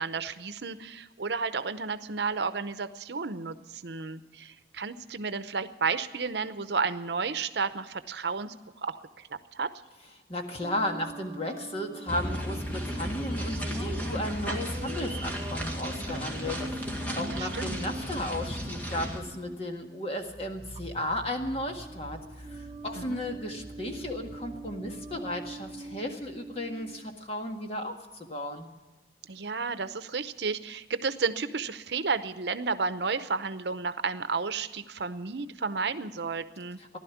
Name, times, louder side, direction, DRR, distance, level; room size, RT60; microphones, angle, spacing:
voice 1, 0.0-8.5 8.8-9.0 9.3-9.7 17.2-17.8 22.9-23.2 29.3-36.8, right 4 dB, 75° right, 12 dB, 0.8 m, -32 dB
voice 2, 10.3-28.7 36.8-37.0, left 1 dB, 35° left, 3 dB, 1.7 m, -35 dB
sound 1, 10.6-20.0 20.7-21.1 21.4-27.1, right 2 dB, 30° right, 0.6 m, -44 dB
sound 2, 12.1-19.2, equal, 10° left, 2.0 m, -34 dB
sound 3, 20.2-27.5, right 1 dB, 50° left, 2.4 m, -49 dB
16.0 x 12.0 x 7.1 m, 1.3 s
head